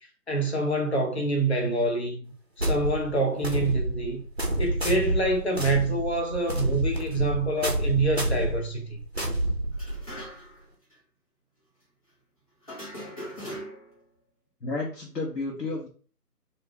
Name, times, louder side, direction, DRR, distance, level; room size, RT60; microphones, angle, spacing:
voice 1, 0.3-2.2 2.6-4.2 4.6-9.0, right 2 dB, 45° left, 0.5 m, -26 dB
sound 1, 2.6-10.2, right 1 dB, 45° right, 0.5 m, -28 dB
sound 2, 9.7-10.6 10.9-11.0 12.6-14.0, equal, 20° left, 0.9 m, -40 dB
voice 2, 14.6-15.9, left 3 dB, 85° left, 0.9 m, -31 dB
2.4 x 2.2 x 3.5 m
figure-of-eight pair, 160°, 48 cm